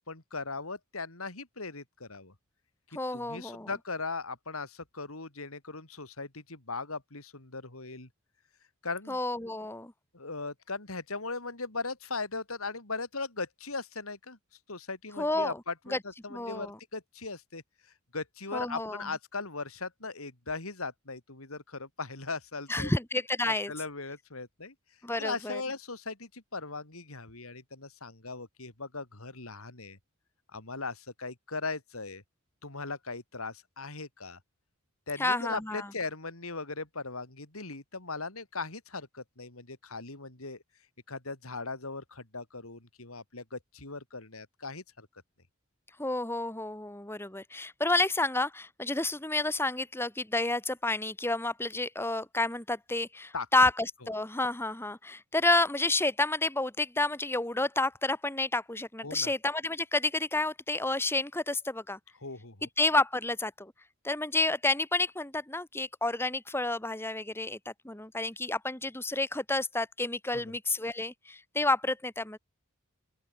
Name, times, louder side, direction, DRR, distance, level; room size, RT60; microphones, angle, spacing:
voice 1, 0.0-2.3 2.9-8.1 8.8-9.2 10.1-14.4 14.7-17.6 18.1-22.9 23.5-24.7 25.2-30.0 30.5-32.2 32.6-34.4 35.1-40.6 41.1-45.1 53.3-53.5 59.0-59.3 62.2-62.7 70.3-70.5, left 3 dB, 85° left, 3.6 m, -38 dB
voice 2, 3.0-3.7 9.1-9.9 15.2-15.6 15.9-16.0 16.3-16.8 18.5-19.1 22.7-23.7 25.0-25.6 35.2-35.9 46.0-62.0 62.8-63.7 64.0-72.4, left 2 dB, 10° left, 1.9 m, -30 dB
open air
head